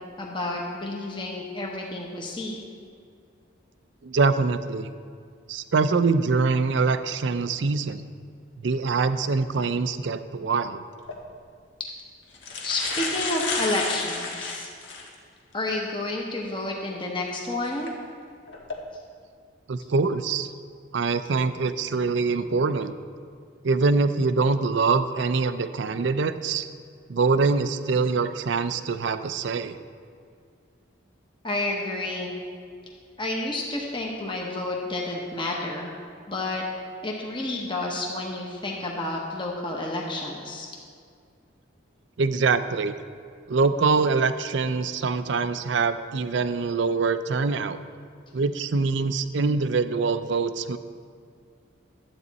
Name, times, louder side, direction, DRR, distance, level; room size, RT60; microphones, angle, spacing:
voice 1, 0.2-2.6 12.6-14.7 15.5-17.9 31.4-32.3 33.2-36.0 36.3-36.6 37.0-40.7, left 2 dB, 25° left, -1 dB, 1.0 m, -30 dB
voice 2, 4.0-4.9 5.5-8.0 8.6-10.8 19.7-20.5 20.9-22.9 23.6-26.7 27.1-29.8 42.2-42.9 43.5-47.8 48.3-50.8, right 4 dB, 65° right, 11 dB, 0.5 m, -24 dB
sound 1, 11.0-11.2 12.0-12.1 12.3-15.1 15.7-15.8 17.7-17.9 18.5-18.7, left 4 dB, 70° left, 1.4 m, -31 dB
12.0 x 8.4 x 4.1 m, 2.2 s
head